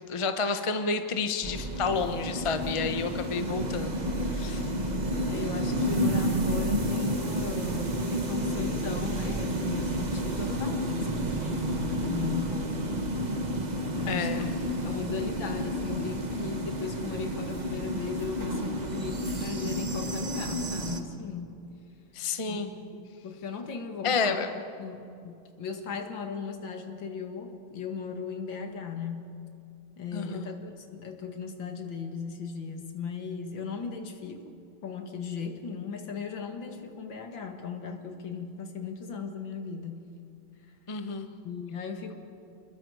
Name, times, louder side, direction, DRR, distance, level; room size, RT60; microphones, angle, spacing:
voice 1, 0.1-4.7 14.1-14.4 22.1-22.7 24.0-24.5 30.1-30.5 40.9-41.3, left 4 dB, 25° left, 7 dB, 0.6 m, -30 dB
sound 1, 1.4-21.0, right 1 dB, 25° right, 1.1 m, -30 dB
voice 2, 3.4-3.8 5.3-13.0 13.9-14.5 14.8-21.5 22.5-29.4 30.0-34.5 34.8-40.1 41.4-42.1, left 5 dB, 70° left, 5 dB, 2.4 m, -37 dB
28.0 x 21.0 x 4.9 m, 2.5 s
omnidirectional pair, 2.2 m